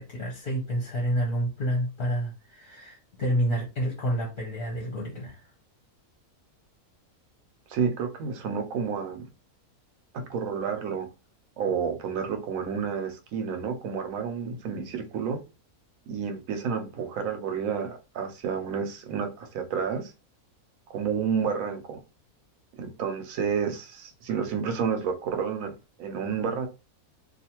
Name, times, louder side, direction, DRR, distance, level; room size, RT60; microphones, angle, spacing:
voice 1, 0.0-5.5, equal, 50° left, 0.8 m, -29 dB
voice 2, 7.7-9.2 10.1-11.1 11.6-15.4 16.1-20.1 20.9-22.0 22.8-25.7 26.0-26.7, right 6 dB, 70° right, 1.0 m, -30 dB
2.4 x 2.4 x 2.8 m
omnidirectional pair, 1.6 m